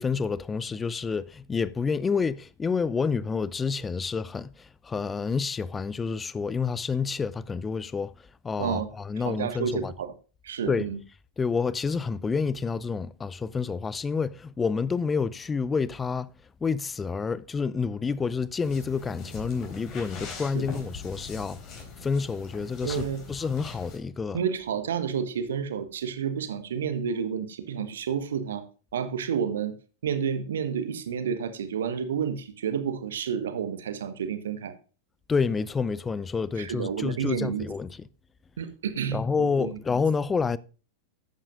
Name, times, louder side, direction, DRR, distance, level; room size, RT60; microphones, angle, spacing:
voice 1, 0.0-4.5 4.8-8.1 8.4-9.9 10.7-10.9 11.4-16.3 16.6-21.6 22.0-24.4 35.3-37.9 39.1-40.6, left 5 dB, 15° left, 0.5 m, -28 dB
voice 2, 8.6-8.9 9.2-10.1 10.4-11.0 20.5-20.7 22.8-23.2 24.3-28.6 28.9-29.7 30.0-34.7 36.6-37.7 38.6-39.8, right 7 dB, 65° right, 1.4 m, -30 dB
sound 1, 18.6-24.0, left 4 dB, 35° left, 3.6 m, -41 dB
13.0 x 8.9 x 2.5 m
figure-of-eight pair, 90°, 0 cm